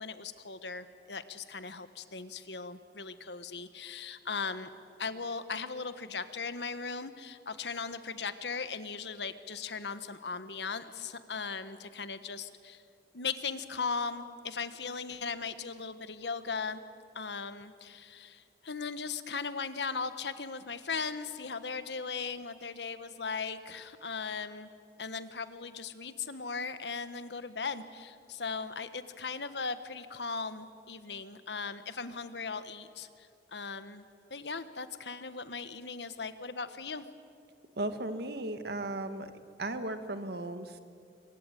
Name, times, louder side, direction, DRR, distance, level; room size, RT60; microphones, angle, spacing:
voice 1, 0.0-4.7 5.0-12.8 13.1-16.8 17.1-24.7 25.0-37.1, left 5 dB, 75° left, 11 dB, 1.4 m, -38 dB
voice 2, 37.8-39.3 39.6-40.8, right 2 dB, 65° right, 9 dB, 1.8 m, -36 dB
25.5 x 24.0 x 9.2 m, 2.3 s
head